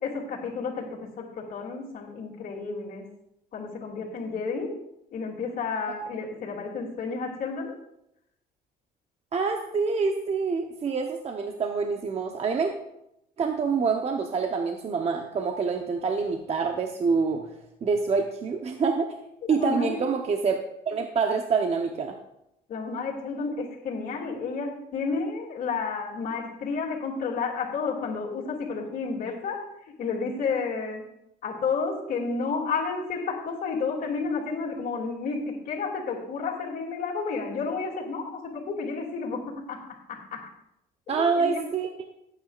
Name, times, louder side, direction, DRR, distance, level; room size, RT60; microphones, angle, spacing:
voice 1, 0.0-0.8 1.2-3.0 3.5-4.7 5.1-7.7 19.5-20.0 22.7-29.6 30.0-31.0 31.4-39.4 39.7-39.8 40.1-40.4 41.1-41.6, left 4 dB, 55° left, -5 dB, 2.7 m, -31 dB
voice 2, 9.3-12.7 13.4-17.5 17.8-19.2 19.5-22.1 41.1-42.1, right 5 dB, 40° right, 4 dB, 0.9 m, -26 dB
17.5 x 9.0 x 2.5 m, 0.81 s
cardioid pair, 110°, 17 cm